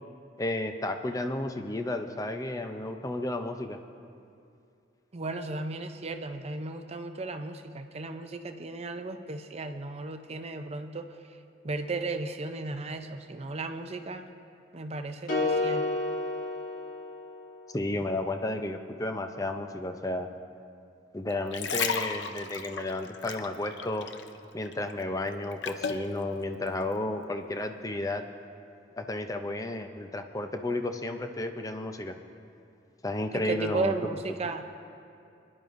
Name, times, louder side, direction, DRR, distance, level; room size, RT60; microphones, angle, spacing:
voice 1, 0.4-3.8 17.7-20.3 21.1-24.1 24.5-28.2 29.0-32.2 33.0-34.2, left 1 dB, 20° left, 6 dB, 0.5 m, -32 dB
voice 2, 5.1-11.1 11.6-14.3 14.7-15.9 33.3-34.6, right 3 dB, 35° right, 7 dB, 0.6 m, -35 dB
sound 1, 15.3-17.6, left 2 dB, 45° left, 1.4 m, -30 dB
sound 2, 21.3-24.4 24.6-26.1 26.7-26.8, left 6 dB, 70° left, 0.6 m, -34 dB
23.0 x 11.0 x 2.6 m, 2.5 s
head